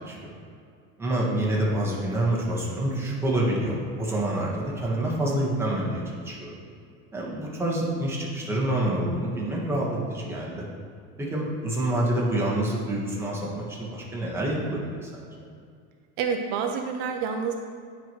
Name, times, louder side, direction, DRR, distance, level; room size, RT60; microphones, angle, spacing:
voice 1, 1.0-6.5 7.1-10.6 11.2-15.2, right 1 dB, 10° right, -5 dB, 1.4 m, -27 dB
voice 2, 16.2-17.5, right 6 dB, 65° right, 4 dB, 0.7 m, -28 dB
10.0 x 4.7 x 3.1 m, 2.2 s
cardioid pair, 135°, 31 cm